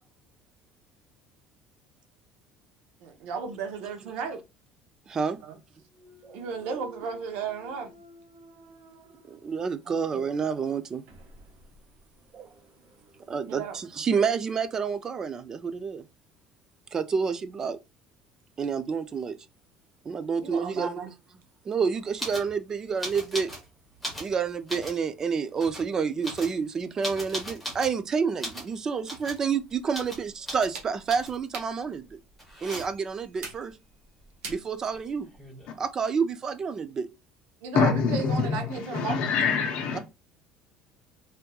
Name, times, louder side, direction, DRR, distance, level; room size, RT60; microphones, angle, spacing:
voice 1, 3.0-4.4 5.4-5.6 6.3-7.9 9.9-10.3 13.5-13.8 20.4-21.1 37.6-39.2, right 5 dB, 70° right, 0.7 m, -34 dB
voice 2, 5.1-5.4 6.3-6.4 9.3-11.0 12.3-12.5 13.3-16.0 16.9-17.8 18.6-19.4 20.1-21.0 21.7-23.5 24.2-32.2 32.6-33.7 34.5-35.3 35.8-37.1, right 6 dB, 20° right, 0.3 m, -29 dB
Thump thud, 5.9-9.9 10.4-15.1, right 3 dB, 85° right, 1.5 m, -54 dB
sound 1, 22.2-22.5 23.0-23.6 23.9-25.0 25.6-25.9 26.2-28.0 28.4-28.7 29.0-29.4 29.9-30.2 30.5-30.7 31.1-31.5 32.4-33.1 34.9-35.0 35.2-35.8, equal, ahead, 1.0 m, -38 dB
sound 2, 29.5-35.4, right 4 dB, 40° right, 1.1 m, -47 dB
voice 3, 37.7-40.0, left 5 dB, 45° left, 0.6 m, -25 dB
3.3 x 2.9 x 2.2 m
cardioid pair, 175°, 3 cm